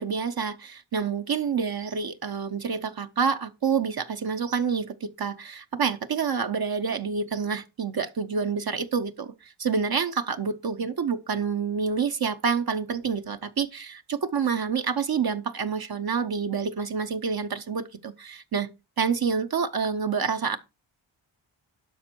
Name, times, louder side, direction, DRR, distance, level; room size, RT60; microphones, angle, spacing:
voice 1, 0.0-18.7 19.0-20.6, right 6 dB, 50° right, 0.8 m, -28 dB
12.0 x 5.1 x 4.5 m
wide cardioid pair, 80°, 46 cm